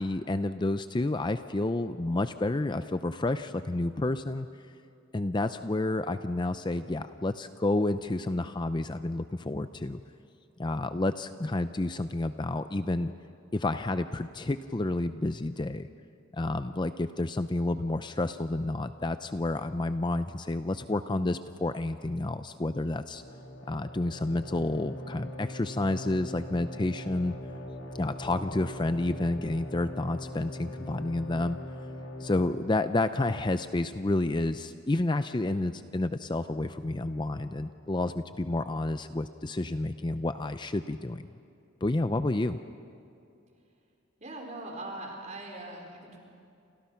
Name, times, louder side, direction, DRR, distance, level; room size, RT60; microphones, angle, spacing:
voice 1, 0.0-4.5 5.1-10.0 10.6-13.1 13.5-15.9 16.3-23.2 23.7-27.3 27.9-31.6 32.2-41.3 41.8-42.6, left 2 dB, 25° left, 10 dB, 0.5 m, -30 dB
sound 1, 23.1-32.6, left 1 dB, 85° left, 2.9 m, -41 dB
voice 2, 44.2-46.2, right 2 dB, 35° right, 1 dB, 4.7 m, -41 dB
29.5 x 27.5 x 5.8 m, 2.6 s
head